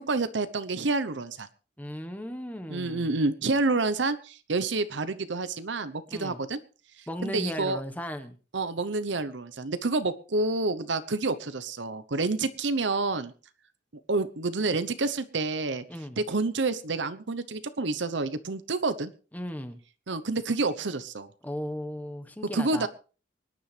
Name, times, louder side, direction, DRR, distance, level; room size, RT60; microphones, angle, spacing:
voice 1, 0.0-1.5 2.7-6.6 7.2-7.8 8.5-13.3 14.1-15.8 16.2-19.1 20.1-21.3 22.5-22.9, right 3 dB, 65° right, 12 dB, 0.9 m, -28 dB
voice 2, 1.8-3.2 6.1-6.4 7.1-8.3 15.9-16.2 19.3-19.8 21.4-22.9, equal, 10° left, 8 dB, 1.2 m, -36 dB
24.5 x 10.0 x 3.3 m, 0.36 s
head